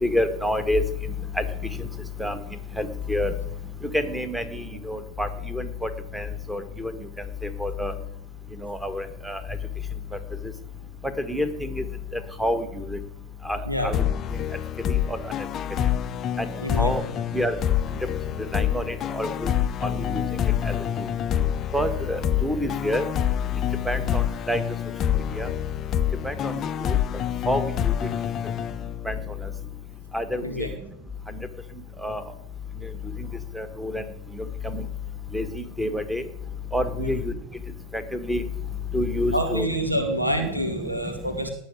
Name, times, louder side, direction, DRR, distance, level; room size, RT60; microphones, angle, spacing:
voice 1, 0.0-0.8 1.4-1.5 1.8-1.9 2.2-2.4 2.8-3.3 3.9-6.9 7.6-7.9 8.6-9.4 11.2-11.8 12.4-13.0 13.4-14.0 15.1-15.2 16.4-16.5 16.8-17.0 17.3-17.6 18.5-19.5 19.8-20.2 20.6-21.1 21.7-23.0 23.8-24.6 25.3-25.5 26.2-27.0 27.5-27.9 29.0-29.1 30.1-30.7 32.0-32.2 33.5-34.0 34.3-34.8 35.3-36.2 36.7-37.3 37.9-38.4 38.9-39.7 39.9-40.0 40.6-40.7, left 1 dB, 5° right, 11 dB, 1.6 m, -28 dB
sound 1, 13.9-29.4, left 10 dB, 30° left, 0.6 m, -27 dB
voice 2, 16.6-16.9 30.4-30.7 37.0-37.2 39.3-41.5, equal, 85° right, 5 dB, 2.4 m, -27 dB
19.0 x 6.4 x 9.6 m, 0.81 s
figure-of-eight pair, 90°, 0 cm